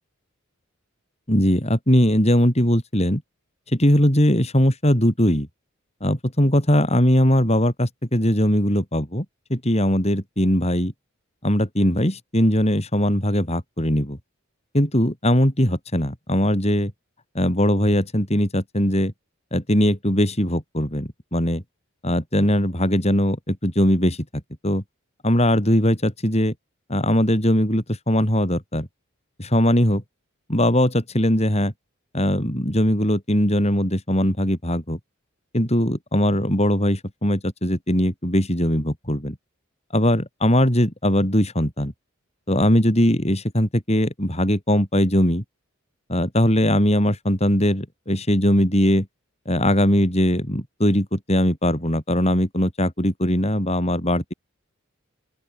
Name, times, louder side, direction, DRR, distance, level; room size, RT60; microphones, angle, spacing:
voice 1, 1.3-3.2 3.7-5.5 6.0-9.3 9.5-10.9 11.4-14.2 14.7-16.9 17.4-19.1 19.5-21.6 22.0-24.2 24.6-24.8 25.2-26.5 26.9-28.9 29.4-30.0 30.5-31.7 32.1-35.0 35.5-39.4 39.9-41.9 42.5-45.4 46.1-49.1 49.5-54.3, equal, 30° left, 5.4 m, -20 dB
open air
head